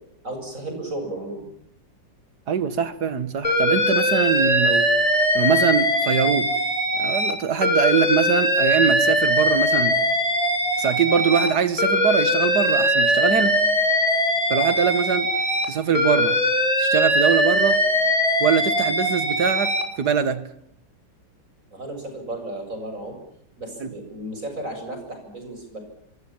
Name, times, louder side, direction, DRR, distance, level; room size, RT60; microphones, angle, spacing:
voice 1, 0.2-1.5 21.7-23.1 23.6-25.8, right 1 dB, 45° right, 8.0 m, -34 dB
voice 2, 2.5-4.9 5.3-6.5 7.0-10.0 10.8-13.5 14.5-15.3 15.7-16.4 16.8-17.8 18.4-19.7 20.0-20.5 23.8-23.9, right 7 dB, 60° right, 2.3 m, -23 dB
Alarm, 3.4-7.3 7.6-11.5 11.8-15.7 15.9-19.8, equal, 20° left, 5.0 m, -21 dB
26.0 x 25.0 x 7.3 m
omnidirectional pair, 2.0 m